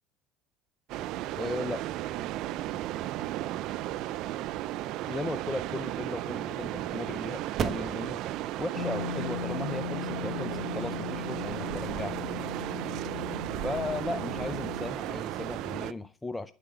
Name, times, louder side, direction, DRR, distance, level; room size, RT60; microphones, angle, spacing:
sound 1, 0.9-15.9, right 14 dB, 60° right, 0.5 m, -35 dB
voice 1, 1.4-1.8 5.1-8.2 8.6-12.2 13.6-16.5, left 2 dB, 15° left, 0.6 m, -36 dB
sound 2, 4.9-12.3, right 7 dB, 45° right, 1.1 m, -41 dB
sound 3, 8.7-14.9, left 12 dB, 75° left, 1.3 m, -38 dB
9.5 x 8.4 x 5.8 m
hypercardioid pair, 65°, 0 cm